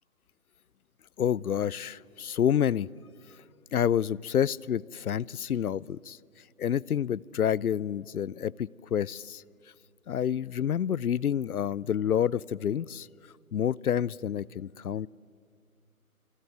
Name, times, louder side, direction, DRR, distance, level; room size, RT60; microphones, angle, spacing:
voice 1, 1.2-2.9 3.7-6.2 6.6-9.4 10.1-13.1 13.5-15.1, left 9 dB, 80° left, 25 dB, 0.7 m, -28 dB
27.5 x 25.0 x 8.1 m, 2.1 s
hypercardioid pair, 160°, 44 cm